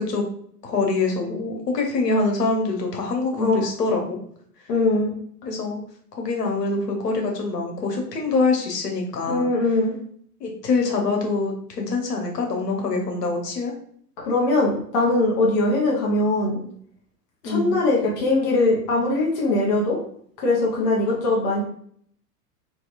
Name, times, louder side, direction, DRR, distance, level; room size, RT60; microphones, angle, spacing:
voice 1, 0.6-4.2 5.4-5.8 6.1-9.4 10.4-13.7 17.4-17.8, left 3 dB, 75° left, 2 dB, 0.9 m, -24 dB
voice 2, 4.7-5.1 9.3-9.9 14.2-16.6 17.4-20.0 20.4-21.6, left 2 dB, 15° left, -3 dB, 0.4 m, -21 dB
2.9 x 2.6 x 2.4 m, 0.62 s
figure-of-eight pair, 100°, 48 cm